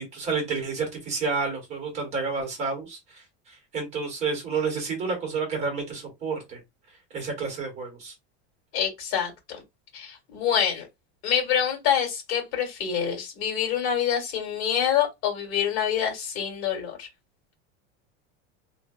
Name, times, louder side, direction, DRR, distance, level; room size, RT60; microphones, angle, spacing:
voice 1, 0.0-6.6 7.1-8.1, right 4 dB, 20° right, 1.0 m, -30 dB
voice 2, 8.7-9.6 9.9-10.9 11.2-17.1, left 8 dB, 60° left, 1.5 m, -26 dB
2.7 x 2.2 x 2.3 m
supercardioid pair, 175°, 33 cm